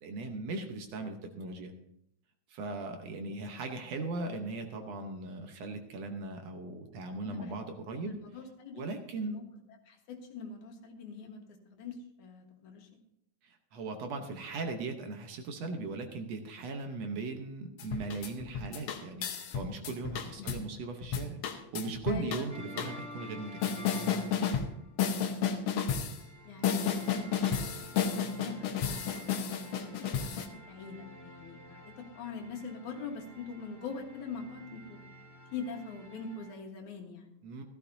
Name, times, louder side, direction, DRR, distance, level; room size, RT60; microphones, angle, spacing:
voice 1, 0.0-1.7 2.5-8.2 8.7-9.4 13.4-23.8 37.4-37.6, right 3 dB, 65° right, 5 dB, 2.1 m, -38 dB
voice 2, 8.0-8.8 9.2-9.4 9.9-12.9 20.4-20.5 22.1-22.5 26.4-35.0 35.5-37.3, left 5 dB, 90° left, 2 dB, 2.9 m, -43 dB
sound 1, 17.8-20.6 21.0-22.4 22.8-22.9 23.6-24.7 25.0-26.2 26.6-30.5, left 7 dB, 65° left, 1.9 m, -32 dB
sound 2, 22.5-25.0 26.1-36.6, right 1 dB, 10° left, 1.3 m, -49 dB
15.0 x 13.0 x 2.7 m, 0.77 s
omnidirectional pair, 3.3 m